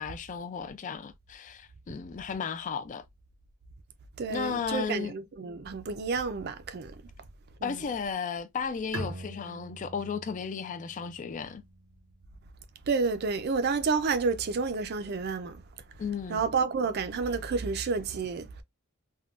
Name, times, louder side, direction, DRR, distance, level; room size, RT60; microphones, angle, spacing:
voice 1, 0.0-3.0 4.3-5.1 7.6-11.6 16.0-16.4, left 6 dB, 35° left, 0.3 m, -34 dB
voice 2, 4.2-6.9 7.6-7.8 12.9-15.6 16.3-18.6, right 4 dB, 50° right, 0.4 m, -30 dB
Bowed string instrument, 8.9-12.5, right 2 dB, 80° right, 0.8 m, -43 dB
3.6 x 2.2 x 2.4 m
head